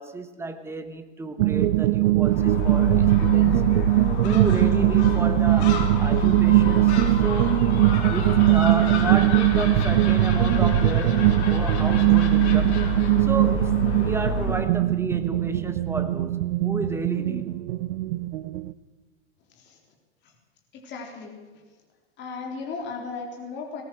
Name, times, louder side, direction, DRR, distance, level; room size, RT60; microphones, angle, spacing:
voice 1, 0.0-7.6 8.1-17.6, right 3 dB, 5° right, 1.3 m, -32 dB
sound 1, 1.4-18.7, right 17 dB, 75° right, 0.9 m, -21 dB
Gull seagull, 2.2-14.7, left 2 dB, 70° left, 4.9 m, -28 dB
voice 2, 20.8-21.3 22.2-23.8, left 4 dB, 30° left, 3.8 m, -35 dB
20.0 x 18.5 x 7.7 m
supercardioid pair, 150°, 34 cm